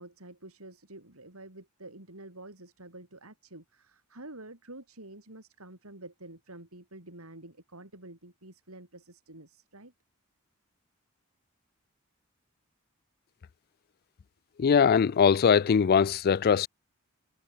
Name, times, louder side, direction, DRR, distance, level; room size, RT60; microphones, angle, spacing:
voice 1, 0.0-9.9, right 2 dB, 85° right, 6.2 m, -48 dB
voice 2, 14.6-16.7, left 6 dB, 45° left, 0.3 m, -21 dB
head